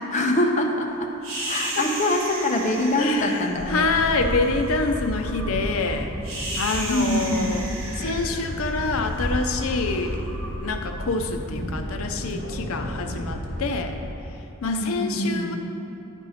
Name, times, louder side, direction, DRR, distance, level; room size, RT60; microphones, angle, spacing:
voice 1, 0.1-1.1 1.4-3.9 6.9-7.6 14.8-15.5, left 1 dB, 35° left, 2 dB, 0.7 m, -24 dB
sound 1, 1.2-11.6, right 1 dB, 80° right, 1.3 m, -33 dB
voice 2, 1.6-1.9 3.0-6.1 6.6-7.7 7.9-10.3 10.6-14.0 14.6-15.6, left 3 dB, 80° left, 6 dB, 0.6 m, -26 dB
sound 2, 4.0-14.1, equal, 60° left, 1.4 m, -34 dB
10.5 x 5.4 x 4.2 m, 2.9 s
head